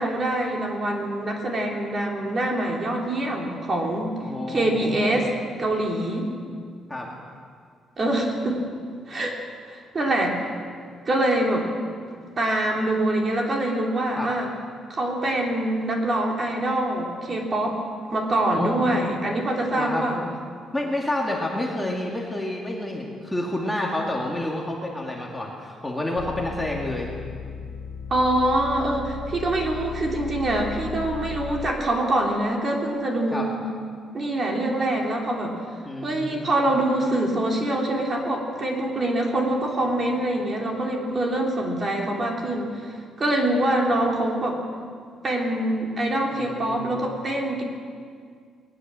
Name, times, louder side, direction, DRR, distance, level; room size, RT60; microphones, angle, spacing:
voice 1, 0.0-4.2 4.5-5.3 5.6-6.3 8.0-8.6 9.1-9.4 9.7-10.4 11.0-11.7 12.4-14.5 14.9-17.8 18.1-20.2 28.1-33.6 34.1-35.6 36.0-44.6 45.2-47.6, right 1 dB, 30° right, 0 dB, 3.3 m, -24 dB
voice 2, 4.2-5.2 6.9-7.1 14.2-14.3 18.5-18.9 19.8-20.0 20.7-27.1 33.3-33.5 35.8-36.6 46.3-47.0, left 1 dB, 5° left, -2 dB, 2.2 m, -29 dB
sound 1, 26.2-31.7, left 6 dB, 45° left, 0.7 m, -36 dB
20.0 x 20.0 x 7.6 m, 2.1 s
cardioid pair, 165°, 0 cm